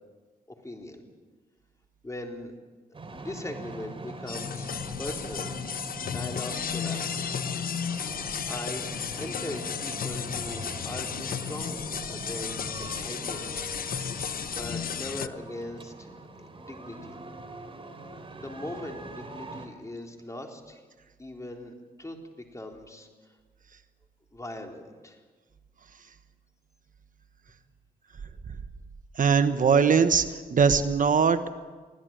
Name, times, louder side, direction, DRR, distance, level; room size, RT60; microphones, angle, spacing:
voice 1, 0.6-1.0 2.0-2.5 3.1-5.5 6.1-7.5 8.5-8.9 9.1-13.7 14.4-17.2 18.3-20.8 21.2-22.2 22.5-23.4 24.3-25.2, left 1 dB, 20° left, 2 dB, 3.9 m, -40 dB
sound 1, 2.9-19.7, right 2 dB, 35° right, 3.8 m, -42 dB
sound 2, 4.3-15.3, left 8 dB, 65° left, 0.8 m, -34 dB
voice 2, 29.2-30.2 30.5-31.6, right 6 dB, 55° right, 10 dB, 1.1 m, -21 dB
24.0 x 16.0 x 9.0 m, 1.4 s
cardioid pair, 85°, 16 cm